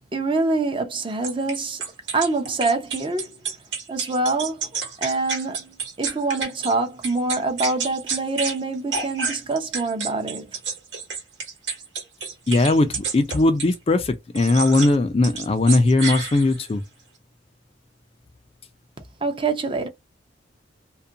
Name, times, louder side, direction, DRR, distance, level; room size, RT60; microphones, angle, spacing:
voice 1, 0.1-1.8 2.1-3.4 3.9-4.7 5.0-10.5 19.2-19.9, right 3 dB, 25° right, 0.6 m, -25 dB
sound 1, 1.2-6.7 7.0-8.6 8.9-13.8 14.3-14.9 15.2-16.7, right 5 dB, 90° right, 1.3 m, -30 dB
voice 2, 12.5-16.8, left 2 dB, 30° left, 0.3 m, -19 dB
2.4 x 2.2 x 2.7 m
head